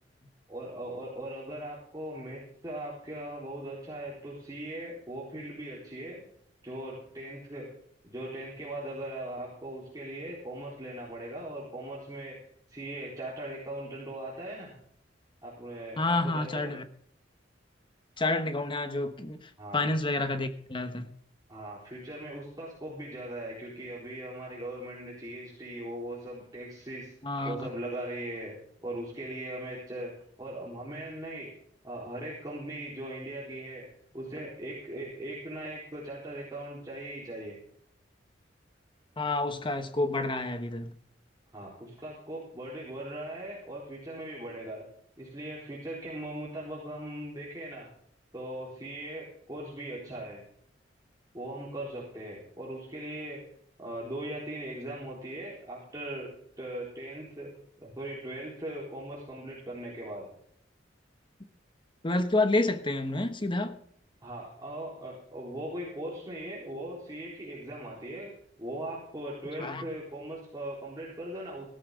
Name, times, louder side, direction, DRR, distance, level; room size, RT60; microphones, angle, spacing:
voice 1, 0.5-6.2 6.6-7.7 8.0-12.4 12.7-14.7 15.4-16.7 19.6-19.9 21.5-27.1 27.4-31.5 31.8-37.6 41.5-44.9 45.2-47.9 48.3-50.4 51.3-53.5 53.8-56.3 56.6-57.5 57.8-60.3 64.2-68.3 68.6-71.7, right 1 dB, 20° right, 3.9 m, -39 dB
voice 2, 16.0-16.8 18.2-21.1 27.2-27.7 39.2-40.9 62.0-63.8 69.6-69.8, left 2 dB, 25° left, 1.2 m, -29 dB
16.0 x 13.0 x 3.8 m
head